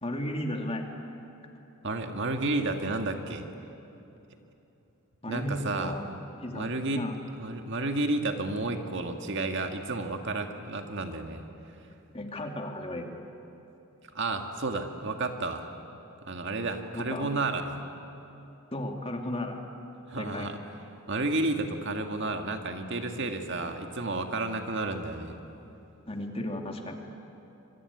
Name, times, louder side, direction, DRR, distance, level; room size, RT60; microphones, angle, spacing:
voice 1, 0.0-0.9 5.2-6.0 6.4-6.7 6.9-7.2 12.1-13.1 16.9-17.3 18.7-19.6 20.2-20.5 26.1-27.0, left 1 dB, 25° left, 3 dB, 2.3 m, -34 dB
voice 2, 1.8-3.4 5.3-6.0 6.5-7.1 7.4-11.4 14.1-15.7 16.3-17.8 20.1-20.6 21.1-25.4, right 2 dB, 55° right, 5 dB, 1.9 m, -31 dB
25.5 x 23.5 x 9.7 m, 2.9 s
head